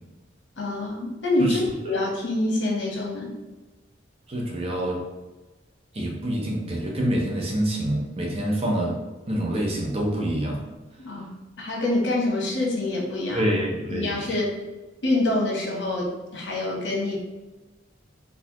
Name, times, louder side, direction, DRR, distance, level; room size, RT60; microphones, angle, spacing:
voice 1, 0.6-3.3 11.0-13.5 13.9-14.6 15.0-17.2, left 2 dB, 70° left, -2 dB, 1.0 m, -26 dB
voice 2, 4.3-5.0 5.9-9.0 9.3-10.6 13.3-14.4, right 1 dB, 30° right, -1 dB, 0.6 m, -26 dB
4.1 x 2.4 x 2.8 m, 1.1 s
head